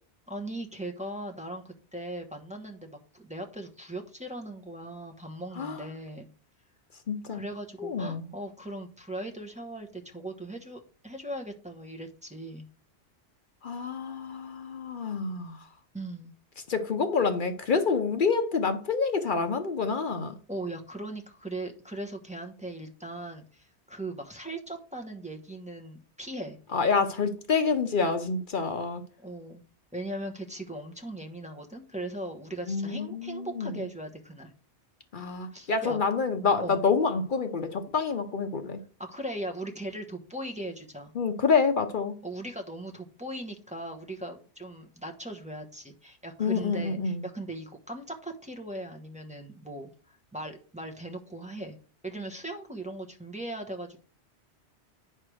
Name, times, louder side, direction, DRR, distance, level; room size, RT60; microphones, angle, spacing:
voice 1, 0.3-6.3 7.3-12.7 15.9-16.3 20.5-26.6 29.2-29.6 29.9-34.5 35.5-36.0 36.6-36.8 39.0-41.1 42.2-51.8 52.0-54.0, right 1 dB, 5° right, 1.0 m, -39 dB
voice 2, 7.1-7.4 7.8-8.3 13.6-15.7 16.7-20.4 26.7-29.0 32.7-33.8 35.1-38.8 41.1-42.2 46.4-47.2, left 5 dB, 55° left, 0.8 m, -27 dB
9.5 x 3.4 x 6.2 m
omnidirectional pair, 1.1 m